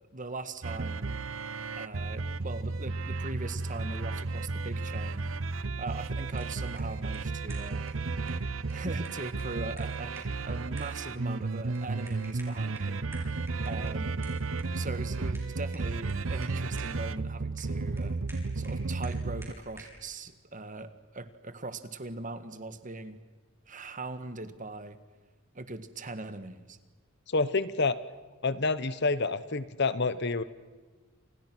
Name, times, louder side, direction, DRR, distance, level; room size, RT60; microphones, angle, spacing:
voice 1, 0.1-1.2 1.8-5.3 5.7-7.9 8.7-14.4 14.7-18.2 18.5-23.2 23.7-25.0 25.5-26.8, right 2 dB, 40° right, 11 dB, 1.6 m, -40 dB
sound 1, 0.6-19.5, right 3 dB, 75° right, 0.8 m, -33 dB
sound 2, 6.1-20.0, right 2 dB, 15° right, 6.7 m, -54 dB
voice 2, 27.3-28.0 28.4-30.4, left 3 dB, 55° left, 14 dB, 1.1 m, -28 dB
30.0 x 28.0 x 6.2 m, 1.4 s
head